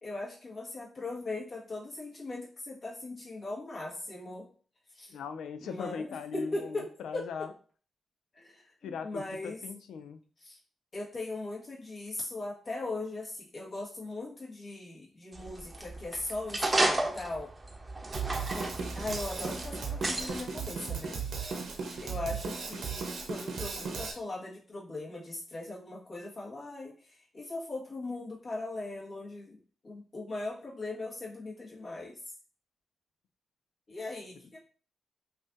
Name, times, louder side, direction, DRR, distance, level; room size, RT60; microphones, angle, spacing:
voice 1, 0.0-4.5 4.9-5.1 5.6-7.5 8.3-9.6 10.4-10.6 10.9-17.5 18.5-21.2 22.0-29.6 29.8-32.2 33.9-34.6, left 2 dB, 50° left, -4 dB, 1.6 m, -39 dB
voice 2, 5.1-7.5 8.8-10.2, left 6 dB, 90° left, 10 dB, 0.3 m, -39 dB
sound 1, 15.3-20.4, right 2 dB, 25° right, 0.7 m, -33 dB
Drum kit, 18.1-24.1, right 5 dB, 75° right, 0.9 m, -36 dB
5.4 x 2.6 x 2.6 m, 0.42 s
cardioid pair, 65°, 0 cm